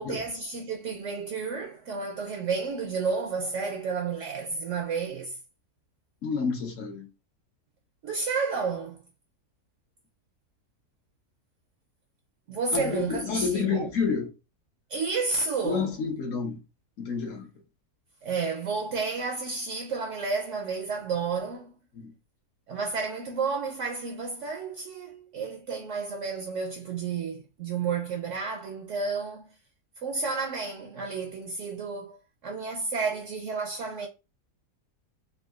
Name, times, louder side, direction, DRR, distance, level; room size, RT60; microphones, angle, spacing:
voice 1, 0.0-5.4 8.0-9.1 12.5-13.9 14.9-15.9 18.2-21.7 22.7-29.5 30.0-32.2 32.4-34.1, right 4 dB, 65° right, 0.8 m, -31 dB
voice 2, 6.2-7.1 12.7-14.3 15.6-16.6 17.0-17.5 21.9-22.1, left 5 dB, 65° left, 1.0 m, -29 dB
3.7 x 2.3 x 2.3 m
omnidirectional pair, 1.6 m